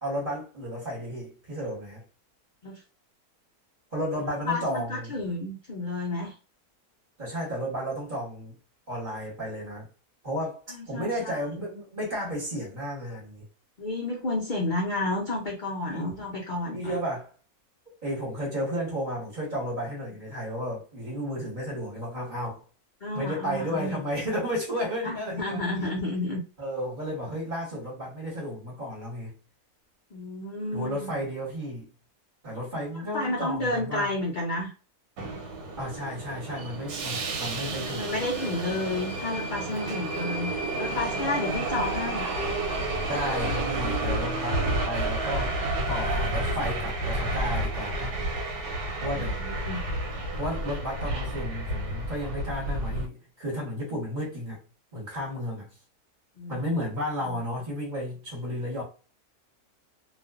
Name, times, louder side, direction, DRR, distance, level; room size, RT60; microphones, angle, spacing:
voice 1, 0.0-2.0 3.9-5.1 7.2-8.5 8.9-9.9 10.2-13.4 15.9-16.1 16.7-17.3 18.0-22.6 23.1-25.9 26.6-29.3 30.7-31.9 32.4-34.1 35.8-38.2 43.1-45.5 45.9-48.1 49.0-49.4 50.4-54.6 54.9-55.7 56.5-58.8, equal, 35° right, 1.1 m, -33 dB
voice 2, 4.4-6.3 10.9-11.4 13.8-16.9 23.0-24.0 25.0-26.4 30.1-31.2 33.1-34.7 37.6-40.5 40.8-42.3 48.9-49.8 56.4-56.6 57.3-57.4, left 2 dB, 90° left, 0.4 m, -31 dB
Subway metro underground, 35.2-53.1, right 2 dB, 90° right, 1.2 m, -30 dB
2.5 x 2.3 x 2.3 m
omnidirectional pair, 1.6 m